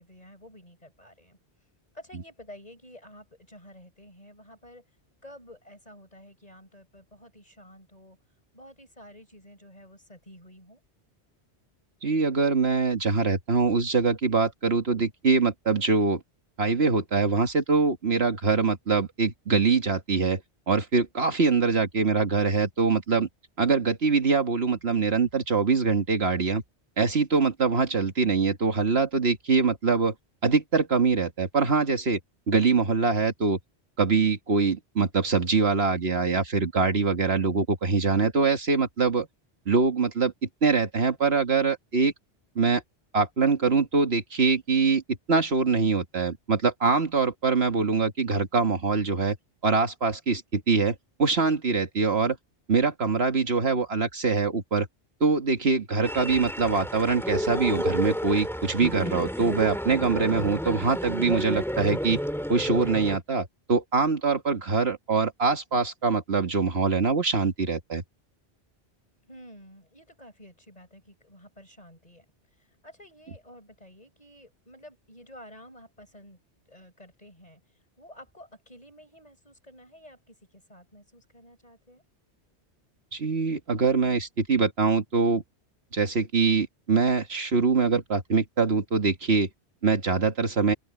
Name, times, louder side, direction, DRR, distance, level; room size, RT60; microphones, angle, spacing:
voice 1, 0.0-1.4 1.9-4.8 5.2-8.2 8.5-10.8 69.3-72.3 72.6-76.4 76.7-77.6 78.0-82.0, equal, 35° left, 7.8 m, -50 dB
voice 2, 12.0-16.2 16.6-20.4 20.7-23.3 23.6-26.6 27.0-30.1 30.4-32.2 32.5-33.6 34.0-39.3 39.7-40.3 40.6-42.1 42.6-42.8 43.1-45.0 45.3-49.4 49.6-52.4 52.7-54.9 55.2-62.2 62.5-68.0 83.1-85.4 85.9-89.5 89.8-90.7, right 4 dB, 65° right, 2.0 m, -24 dB
sound 1, 56.0-63.2, equal, ahead, 3.1 m, -31 dB
open air
omnidirectional pair, 1.1 m